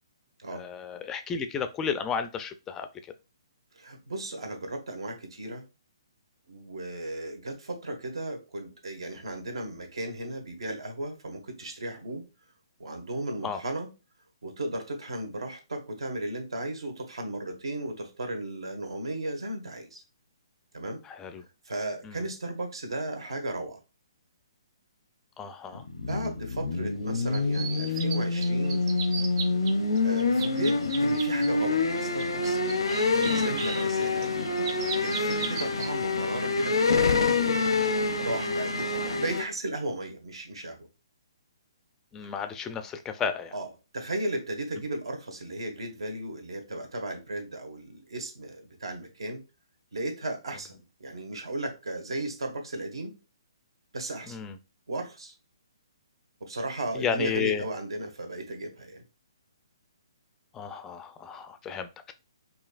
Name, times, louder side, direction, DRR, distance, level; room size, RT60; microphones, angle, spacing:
voice 1, 0.5-2.9 13.4-13.6 21.1-21.4 22.0-22.2 25.4-25.8 42.1-43.5 54.3-54.6 56.9-57.6 60.5-62.1, left 6 dB, 15° left, 9 dB, 0.4 m, -33 dB
voice 2, 3.7-5.6 6.5-12.2 12.8-13.9 14.4-20.0 20.7-21.0 21.6-23.8 25.9-28.8 30.0-34.5 35.0-37.2 38.2-40.9 42.2-42.4 43.5-43.7 43.9-49.4 49.9-53.2 53.9-54.4 54.9-55.3 56.4-59.0, right 1 dB, 80° right, 4 dB, 1.4 m, -35 dB
sound 1, 25.7-39.4, left 3 dB, 90° left, 0.6 m, -26 dB
sound 2, 27.2-28.2 28.4-29.7 30.0-31.5 32.0-35.9 36.3-36.6, right 6 dB, 40° right, 0.8 m, -36 dB
sound 3, 32.8-39.2, right 3 dB, 60° right, 1.4 m, -49 dB
4.9 x 2.8 x 2.4 m, 0.28 s
hypercardioid pair, 140°, 3 cm